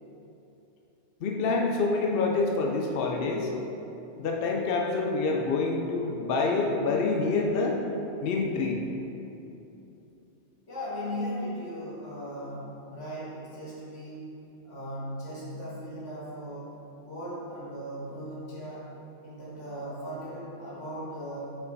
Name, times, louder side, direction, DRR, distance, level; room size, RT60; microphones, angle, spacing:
voice 1, 1.2-3.5 4.2-7.8 8.2-8.8, left 3 dB, 60° left, 0 dB, 0.7 m, -27 dB
voice 2, 10.7-14.4 14.6-18.9 19.2-21.6, equal, 80° left, -9 dB, 2.0 m, -38 dB
5.4 x 4.6 x 4.0 m, 3.0 s
omnidirectional pair, 1.2 m